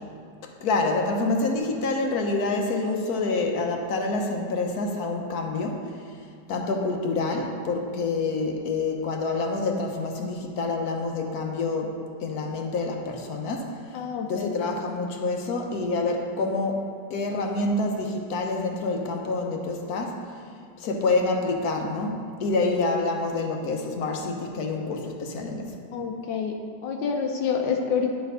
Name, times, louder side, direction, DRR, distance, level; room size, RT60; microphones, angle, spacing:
voice 1, 0.6-6.0 6.5-13.7 14.3-20.2 20.8-25.7, left 3 dB, 60° left, 2 dB, 1.1 m, -27 dB
voice 2, 13.9-14.5 25.9-26.5 26.8-28.1, left 6 dB, 80° left, 2 dB, 1.3 m, -27 dB
9.6 x 3.4 x 5.5 m, 2.2 s
omnidirectional pair, 2.0 m